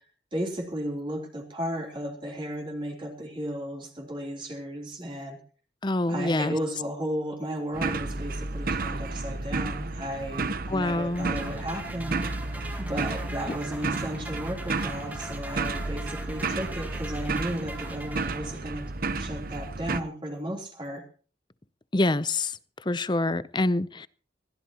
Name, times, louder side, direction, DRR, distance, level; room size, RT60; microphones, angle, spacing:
voice 1, 0.3-5.4 6.1-12.3 12.8-18.8 19.2-21.0, equal, 25° right, 0 dB, 3.4 m, -34 dB
voice 2, 5.8-6.6 10.7-11.3 21.9-22.6 22.9-24.1, left 2 dB, 25° left, 16 dB, 0.6 m, -26 dB
sound 1, 7.7-20.0, right 3 dB, 50° right, 0.9 m, -32 dB
sound 2, 11.1-18.9, right 1 dB, 10° right, 2.0 m, -42 dB
22.0 x 16.0 x 3.0 m, 0.40 s
head